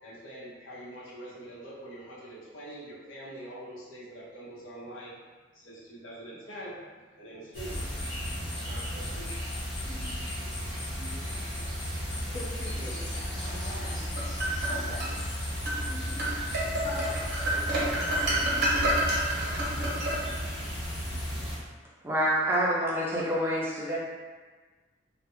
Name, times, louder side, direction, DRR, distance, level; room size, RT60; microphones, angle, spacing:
voice 1, 0.0-5.1 5.5-7.9 8.1-9.6, right 1 dB, 85° left, -7 dB, 0.8 m, -44 dB
sound 1, 7.5-21.6, equal, 65° left, 1.0 m, -34 dB
voice 2, 12.1-14.1 14.7-15.4 15.9-16.2 16.7-17.2 17.5-18.1, left 1 dB, 45° left, -5 dB, 0.6 m, -43 dB
sound 2, 13.8-15.1 15.7-15.8 16.2-20.6, right 1 dB, 55° right, 0.6 m, -29 dB
voice 3, 22.0-24.0, equal, 10° right, -6 dB, 0.4 m, -27 dB
2.4 x 2.1 x 2.9 m, 1.4 s
head